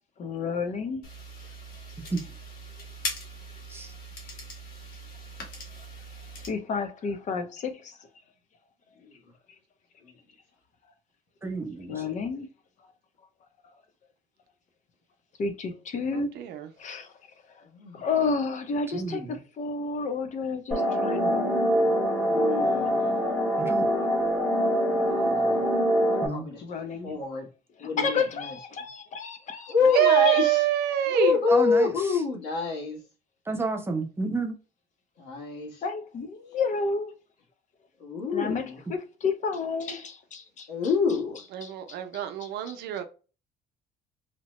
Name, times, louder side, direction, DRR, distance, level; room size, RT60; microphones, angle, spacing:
voice 1, 0.2-1.1 6.5-8.0 11.9-12.5 15.4-16.3 16.8-17.1 17.9-21.9 26.6-27.2 27.8-30.5 35.8-37.1 38.3-40.7 41.6-42.8, left 4 dB, 45° left, 0.6 m, -31 dB
sound 1, 1.0-6.5, left 1 dB, 60° left, 1.1 m, -40 dB
voice 2, 11.4-12.0 18.9-19.4 23.6-23.9 26.2-26.5 31.5-32.2 33.5-34.6, right 3 dB, 15° right, 0.6 m, -30 dB
voice 3, 16.1-16.7 29.9-31.4 41.5-43.0, right 12 dB, 75° right, 0.6 m, -25 dB
voice 4, 17.6-18.1 22.2-23.0 25.0-25.7 26.3-26.6 27.0-27.5 27.8-28.5 29.7-30.6 31.1-33.0 35.2-35.8 38.0-38.8 40.7-41.4, left 5 dB, 85° left, 1.2 m, -27 dB
sound 2, 20.7-26.3, equal, 5° left, 0.9 m, -24 dB
2.9 x 2.1 x 3.0 m
cardioid pair, 110°, 17 cm